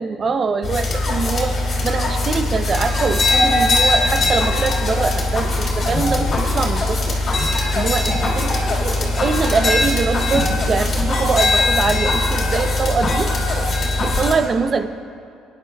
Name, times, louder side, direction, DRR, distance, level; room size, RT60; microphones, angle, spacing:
voice 1, 0.0-1.6 1.8-7.2 7.7-13.3 14.0-14.9, right 4 dB, 40° right, 11 dB, 0.6 m, -23 dB
sound 1, 0.6-14.3, left 2 dB, 45° left, 3.1 m, -20 dB
22.5 x 10.0 x 2.3 m, 2.4 s
supercardioid pair, 80°, 0 cm